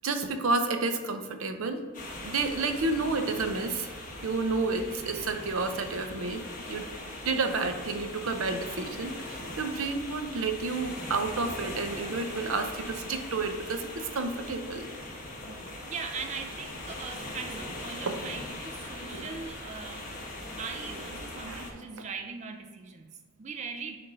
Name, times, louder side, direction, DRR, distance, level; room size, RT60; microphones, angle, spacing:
voice 1, 0.0-1.8 2.2-3.9 4.2-6.4 6.7-6.9 7.2-14.9 18.1-18.2 19.0-19.3 21.4-21.7, right 3 dB, 85° right, 7 dB, 0.6 m, -30 dB
sound 1, 1.9-21.7, left 1 dB, 40° left, 1.1 m, -40 dB
voice 2, 4.7-5.2 15.8-20.1 20.6-24.0, right 5 dB, 35° right, 4 dB, 0.4 m, -40 dB
6.8 x 2.6 x 5.4 m, 1.5 s
head